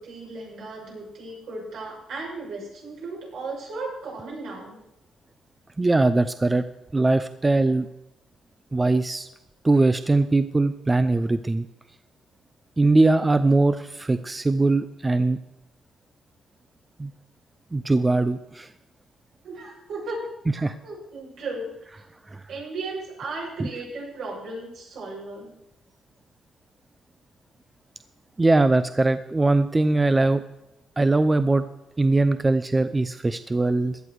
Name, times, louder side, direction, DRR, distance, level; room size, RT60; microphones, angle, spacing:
voice 1, 0.0-4.8 19.4-20.3 20.5-22.0 22.5-25.5, right 2 dB, 75° right, -3 dB, 6.4 m, -36 dB
voice 2, 5.8-6.6 6.9-7.9 8.7-9.3 9.6-11.7 12.8-15.4 17.0-17.1 17.7-18.7 20.6-20.7 22.3-22.4 23.6-23.7 28.4-30.4 31.0-31.6 32.0-34.0, right 2 dB, 20° right, 11 dB, 0.6 m, -21 dB
16.5 x 11.0 x 4.8 m, 0.88 s
cardioid pair, 90°, 0 cm